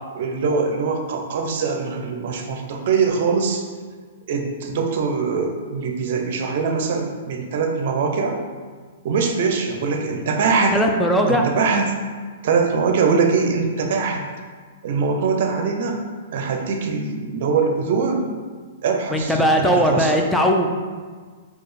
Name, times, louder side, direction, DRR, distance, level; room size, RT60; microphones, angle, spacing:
voice 1, 0.2-3.6 4.3-8.4 9.0-10.8 11.3-11.9 12.4-14.3 14.8-16.0 16.3-18.3 18.8-20.3, right 5 dB, 60° right, 4 dB, 0.5 m, -22 dB
voice 2, 10.7-11.5 19.1-20.7, equal, 5° left, 1 dB, 0.4 m, -18 dB
4.5 x 2.4 x 3.3 m, 1.5 s
hypercardioid pair, 135°, 0 cm